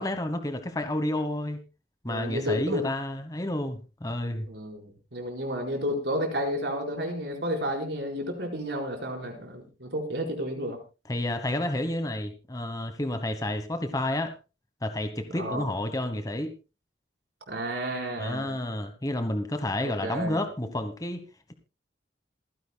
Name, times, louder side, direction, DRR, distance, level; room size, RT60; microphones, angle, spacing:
voice 1, 0.0-1.6 2.0-4.5 11.1-14.3 14.8-16.5 18.2-21.2, left 1 dB, 20° left, 8 dB, 1.2 m, -30 dB
voice 2, 2.1-2.9 4.5-10.8 15.3-15.7 17.5-18.5 19.8-20.4, equal, 70° right, 2 dB, 4.6 m, -31 dB
27.5 x 10.5 x 2.2 m, 0.30 s
head